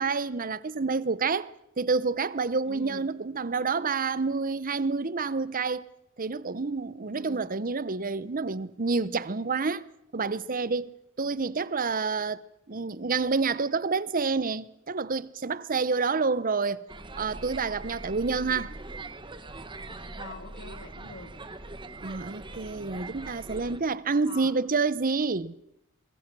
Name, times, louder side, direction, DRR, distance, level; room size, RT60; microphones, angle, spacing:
voice 1, 0.0-1.5 1.8-5.8 6.2-9.8 10.1-12.4 12.7-16.8 17.2-18.7 22.0-25.5, right 4 dB, 40° right, 0.8 m, -28 dB
voice 2, 2.7-3.0 7.1-7.5 20.2-21.3 24.2-24.5, left 3 dB, 60° left, 2.5 m, -44 dB
sound 1, 16.9-23.8, right 2 dB, 25° right, 1.4 m, -42 dB
25.5 x 23.0 x 6.2 m
head